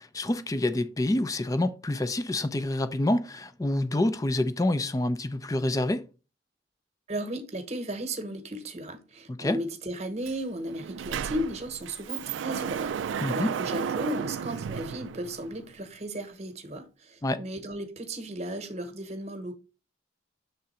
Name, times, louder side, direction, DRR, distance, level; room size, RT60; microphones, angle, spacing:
voice 1, 0.0-6.1 9.3-9.6 13.2-13.5 17.2-17.4, left 1 dB, 20° left, 0.4 m, -27 dB
voice 2, 7.1-19.6, right 1 dB, 35° right, 1.0 m, -35 dB
Sliding door, 10.3-10.4 10.7-15.7, right 7 dB, 90° right, 0.3 m, -33 dB
6.8 x 3.7 x 4.2 m
head